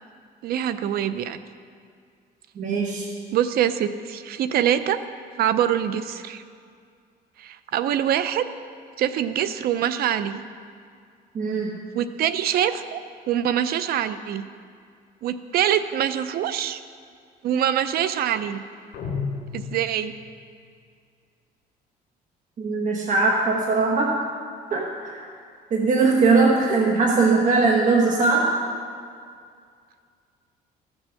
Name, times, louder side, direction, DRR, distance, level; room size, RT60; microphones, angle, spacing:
voice 1, 0.4-1.4 3.3-5.0 5.4-6.4 7.4-8.5 9.0-10.4 11.9-14.4 15.2-16.8 17.4-18.6 19.5-20.1, right 10 dB, 65° right, 12 dB, 0.6 m, -24 dB
voice 2, 2.6-3.1 11.3-11.8 22.6-24.2 24.7-25.2 25.7-28.5, right 3 dB, 50° right, -1 dB, 1.2 m, -20 dB
sound 1, 18.9-20.4, left 5 dB, 75° left, 2.2 m, -32 dB
14.5 x 6.3 x 6.4 m, 2.2 s
cardioid pair, 110°, 17 cm